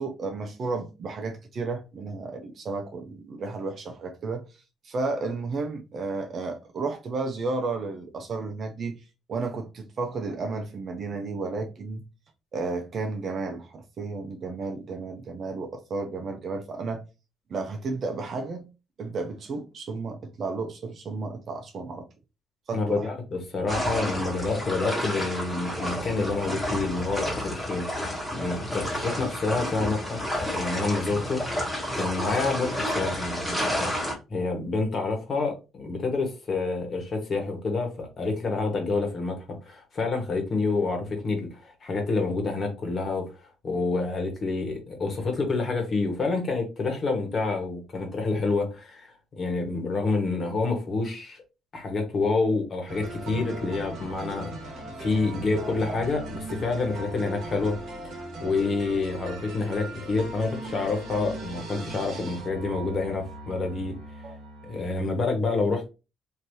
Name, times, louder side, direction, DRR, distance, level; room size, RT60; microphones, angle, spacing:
voice 1, 0.0-4.4 4.8-9.0 9.3-12.0 12.5-17.0 17.5-18.6 19.0-22.1 22.7-23.1 27.2-27.3 55.6-56.0 64.2-64.3, right 3 dB, 50° right, 0.6 m, -32 dB
voice 2, 22.7-27.9 28.3-31.6 31.9-33.9 34.3-51.4 51.7-57.8 58.0-63.9 64.6-65.9, left 3 dB, 45° left, 1.2 m, -28 dB
sound 1, 23.7-34.1, equal, 5° left, 1.5 m, -30 dB
sound 2, 52.9-65.2, right 1 dB, 65° right, 1.2 m, -39 dB
3.2 x 2.7 x 2.7 m
cardioid pair, 90°, 0 cm